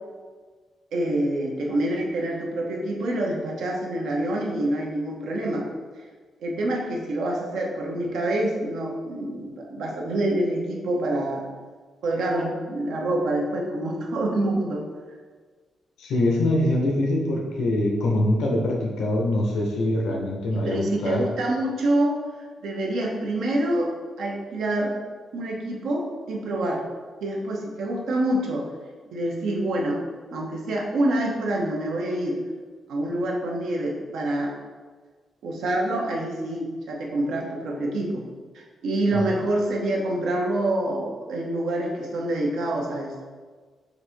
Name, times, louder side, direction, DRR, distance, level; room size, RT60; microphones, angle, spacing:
voice 1, 0.9-5.7 6.4-11.5 12.0-14.8 20.5-22.2 22.6-23.9 24.2-24.9 25.3-26.8 27.2-28.6 29.1-30.0 30.3-32.4 32.9-34.5 35.4-38.2 38.5-43.1, right 1 dB, 80° right, -1 dB, 0.9 m, -26 dB
voice 2, 16.0-21.2 39.1-39.3, left 1 dB, 90° left, -1 dB, 0.7 m, -24 dB
4.2 x 2.7 x 4.3 m, 1.5 s
wide cardioid pair, 170°, 0 cm